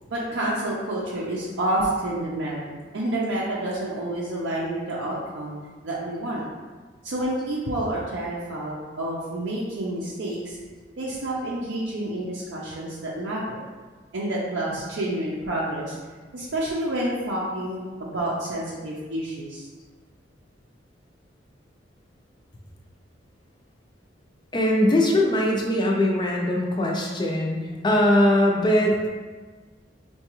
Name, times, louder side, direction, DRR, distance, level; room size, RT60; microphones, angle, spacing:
voice 1, 0.1-5.5 5.8-6.4 7.0-10.6 11.0-13.6 14.1-16.0 16.3-19.7, right 1 dB, 85° right, -6 dB, 0.5 m, -29 dB
voice 2, 24.5-29.1, left 1 dB, 25° left, -1 dB, 0.4 m, -21 dB
4.7 x 2.3 x 2.9 m, 1.4 s
head